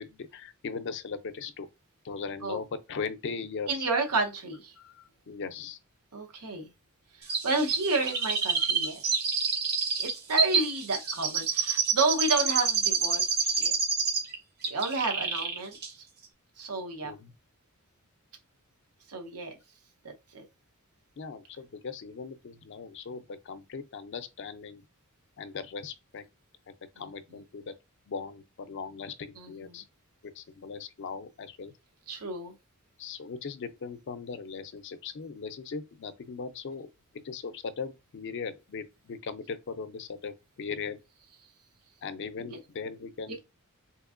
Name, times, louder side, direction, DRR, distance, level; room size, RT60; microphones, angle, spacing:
voice 1, 0.0-1.7 2.0-3.9 4.8-5.8 8.6-8.7 17.0-17.3 21.2-24.8 25.4-26.2 26.7-27.7 28.1-29.8 30.2-31.7 33.0-36.9 37.2-41.0 42.0-43.4, left 5 dB, 55° left, 0.4 m, -39 dB
voice 2, 3.7-4.7 6.1-6.7 7.4-9.0 10.0-13.7 14.7-16.1 16.6-17.1 19.1-19.5 20.0-20.4 29.4-29.8 32.1-32.5 42.5-42.6, right 3 dB, 90° right, 0.8 m, -31 dB
Chirp tweet, 7.3-14.4 14.6-15.6 15.8-15.9, right 5 dB, 45° right, 0.7 m, -28 dB
3.4 x 2.9 x 2.4 m
head